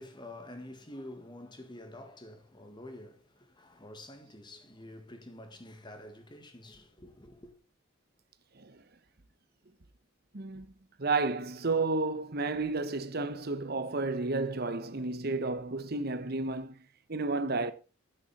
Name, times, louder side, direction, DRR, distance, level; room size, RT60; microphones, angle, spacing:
voice 1, 0.0-7.6, left 1 dB, 20° left, 1.7 m, -48 dB
voice 2, 10.3-10.7 11.0-17.7, right 3 dB, 50° right, 1.0 m, -32 dB
9.3 x 9.2 x 4.2 m
head